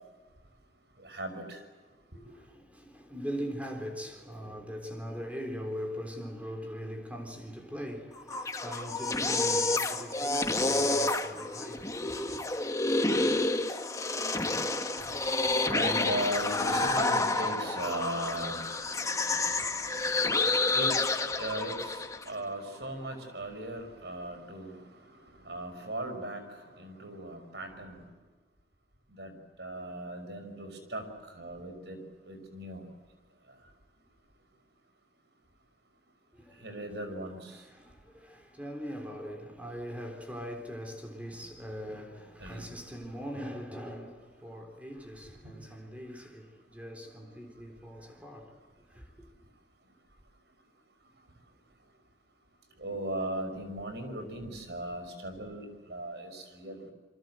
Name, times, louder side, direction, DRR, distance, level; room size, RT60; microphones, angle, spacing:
voice 1, 1.0-1.6 2.1-2.2 15.0-24.8 25.4-26.4 26.8-28.0 29.1-29.3 29.6-32.0 32.2-32.8 36.6-37.6 42.4-42.6 52.8-56.9, right 1 dB, 70° right, 5.9 m, -38 dB
voice 2, 2.2-12.4 36.3-36.8 37.5-49.3, equal, 10° right, 3.8 m, -41 dB
sound 1, 8.2-22.3, left 2 dB, 20° left, 1.6 m, -29 dB
28.5 x 24.0 x 7.8 m
head